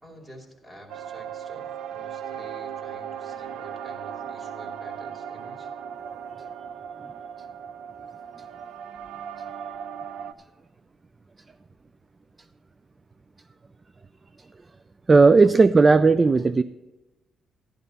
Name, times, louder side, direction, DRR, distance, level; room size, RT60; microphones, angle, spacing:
voice 1, 0.0-5.7 15.4-15.6, equal, 5° right, 2.7 m, -48 dB
sound 1, 0.9-10.3, right 8 dB, 85° right, 0.6 m, -37 dB
voice 2, 15.1-16.6, right 4 dB, 30° right, 0.3 m, -15 dB
12.5 x 11.0 x 4.1 m
cardioid pair, 90°, 0 cm